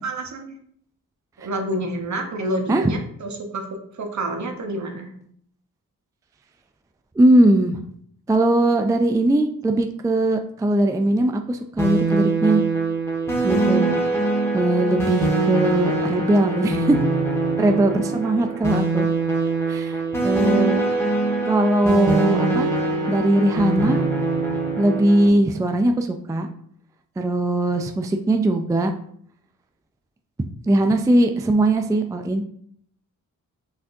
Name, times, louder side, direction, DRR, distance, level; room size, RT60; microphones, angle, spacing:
voice 1, 0.0-0.5 1.4-5.1, right 1 dB, 50° right, 3 dB, 1.0 m, -28 dB
voice 2, 7.2-7.8 8.3-12.6 13.4-14.0 14.5-17.0 17.6-19.1 19.7-20.8 21.5-22.7 23.1-24.0 24.8-26.5 27.2-28.9 30.7-32.4, right 1 dB, 10° right, 5 dB, 0.3 m, -20 dB
sound 1, 11.8-25.3, right 3 dB, 5° left, 1.5 m, -23 dB
5.1 x 3.4 x 2.7 m, 0.65 s
cardioid pair, 55°, 35 cm